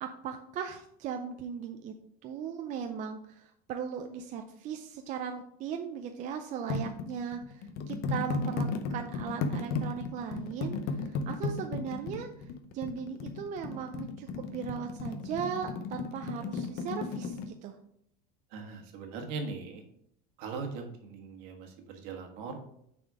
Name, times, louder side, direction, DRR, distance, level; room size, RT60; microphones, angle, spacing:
voice 1, 0.0-1.9 2.2-10.8 11.1-12.3 12.7-17.8, right 7 dB, 40° right, 5 dB, 0.5 m, -38 dB
sound 1, 6.7-17.5, left 4 dB, 55° left, 0.7 m, -35 dB
voice 2, 18.5-19.8 20.4-22.6, right 4 dB, 70° right, 4 dB, 1.4 m, -40 dB
6.4 x 4.3 x 4.8 m, 0.73 s
cardioid pair, 145°, 20 cm